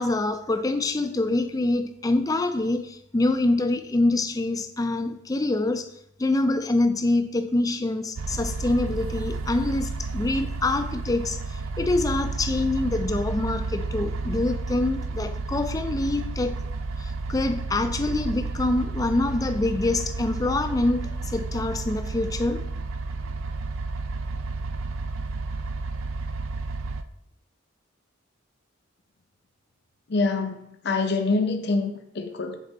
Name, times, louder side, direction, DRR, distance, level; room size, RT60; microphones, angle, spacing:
voice 1, 0.0-5.9 6.2-16.6 17.0-22.6, left 2 dB, 15° left, 9 dB, 0.4 m, -25 dB
sound 1, 8.2-27.0, right 3 dB, 75° right, 0.4 m, -31 dB
voice 2, 30.1-32.6, left 3 dB, 55° left, 5 dB, 0.6 m, -25 dB
7.4 x 4.4 x 3.9 m, 0.75 s
head